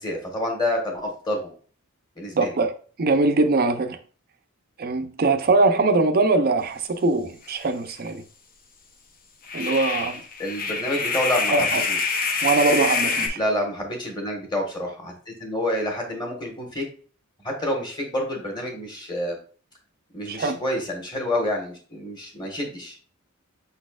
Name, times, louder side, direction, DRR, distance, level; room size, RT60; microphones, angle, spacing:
voice 1, 0.0-1.5 2.2-2.5 10.4-12.2 13.3-15.1 15.4-16.8 17.4-19.4 20.1-23.0, left 1 dB, 20° left, 1.3 m, -28 dB
voice 2, 2.3-2.7 3.0-4.0 4.8-8.2 9.5-10.2 11.5-11.8 12.4-13.4 20.3-20.6, right 3 dB, 45° right, 0.5 m, -22 dB
sound 1, 7.5-7.6 7.9-8.0 9.4-13.3, left 4 dB, 40° left, 0.7 m, -26 dB
5.6 x 4.1 x 2.3 m
head